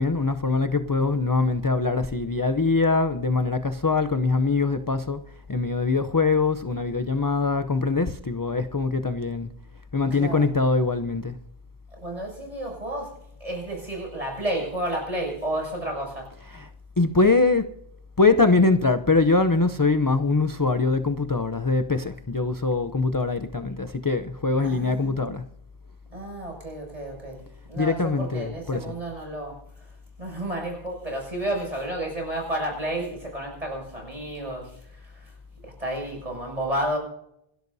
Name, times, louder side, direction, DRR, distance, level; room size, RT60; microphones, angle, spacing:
voice 1, 0.0-5.2 5.5-9.5 9.9-11.3 16.5-16.7 17.0-17.7 18.2-25.4 27.8-28.9, left 3 dB, 25° left, 9 dB, 0.5 m, -23 dB
voice 2, 10.1-10.5 11.9-16.3 24.6-25.3 26.1-27.4 27.7-29.9 30.2-35.3 35.6-37.0, right 1 dB, 35° right, 0 dB, 7.1 m, -31 dB
27.0 x 13.0 x 2.7 m, 0.76 s
omnidirectional pair, 1.0 m